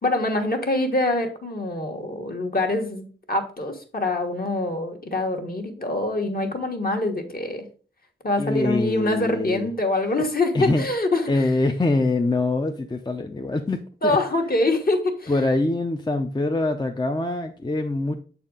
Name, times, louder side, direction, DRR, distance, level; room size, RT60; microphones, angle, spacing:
voice 1, 0.0-7.7 8.2-11.2 14.0-15.3, left 2 dB, 45° left, 3 dB, 1.3 m, -24 dB
voice 2, 8.4-9.7 10.2-10.3 10.5-10.9 11.3-14.2 15.3-18.2, left 2 dB, 20° left, 5 dB, 0.5 m, -24 dB
7.0 x 4.2 x 3.8 m, 0.40 s
wide cardioid pair, 65°, 20 cm